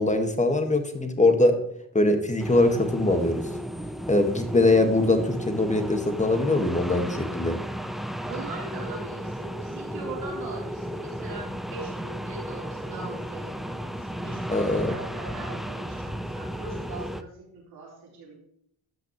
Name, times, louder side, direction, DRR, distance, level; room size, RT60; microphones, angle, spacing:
voice 1, 0.0-1.6 1.9-3.4 4.1-7.6 14.5-15.0, left 2 dB, 20° left, 6 dB, 1.8 m, -22 dB
sound 1, 2.4-17.2, equal, ahead, 0.7 m, -34 dB
voice 2, 8.2-18.4, right 3 dB, 75° right, -3 dB, 4.0 m, -41 dB
14.5 x 6.0 x 3.2 m, 0.72 s
supercardioid pair, 50°, 38 cm